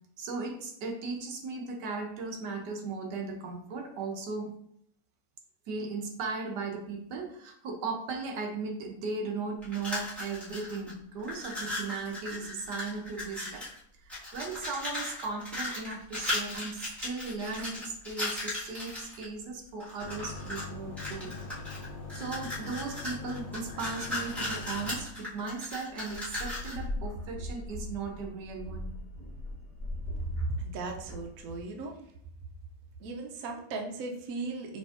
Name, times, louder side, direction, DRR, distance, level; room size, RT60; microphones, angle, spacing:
voice 1, 0.2-4.5 5.7-13.7 14.0-21.3 22.1-28.9, right 4 dB, 65° right, 1 dB, 1.2 m, -37 dB
sound 1, 9.6-10.9 11.2-13.8 14.1-19.2 19.8-20.7 21.0-26.8, left 1 dB, ahead, 1.2 m, -37 dB
sound 2, 20.0-25.0, left 3 dB, 75° left, 1.6 m, -42 dB
sound 3, 26.1-31.6, left 1 dB, 25° left, 0.8 m, -40 dB
voice 2, 30.2-32.0 33.0-34.8, right 3 dB, 85° right, 2 dB, 0.7 m, -36 dB
5.1 x 3.2 x 2.4 m, 0.70 s
omnidirectional pair, 2.2 m